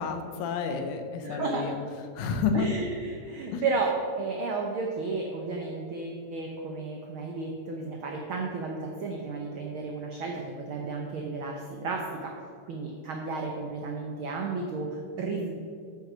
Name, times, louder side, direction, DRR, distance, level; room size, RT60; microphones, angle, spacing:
voice 1, 0.0-1.8 2.2-2.7 3.5-3.6, left 5 dB, 80° left, 6 dB, 2.3 m, -30 dB
voice 2, 1.2-1.7 2.5-12.3 12.7-15.6, right 3 dB, 80° right, 1 dB, 1.1 m, -33 dB
8.6 x 5.9 x 6.2 m, 2.3 s
omnidirectional pair, 3.4 m